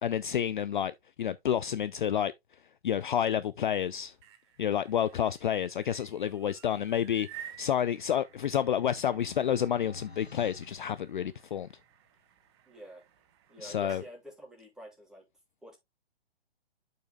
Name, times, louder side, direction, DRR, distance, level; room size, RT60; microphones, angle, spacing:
voice 1, 0.0-2.3 2.8-4.1 4.6-11.7 13.6-14.0, left 9 dB, 50° left, 0.5 m, -29 dB
sound 1, 4.0-14.1, right 10 dB, 25° right, 0.8 m, -53 dB
sound 2, 8.0-11.7, left 3 dB, 90° left, 1.0 m, -51 dB
voice 2, 12.7-13.0 13.5-15.2 15.6-15.8, right 1 dB, ahead, 3.2 m, -48 dB
11.5 x 5.5 x 2.3 m
figure-of-eight pair, 130°, 31 cm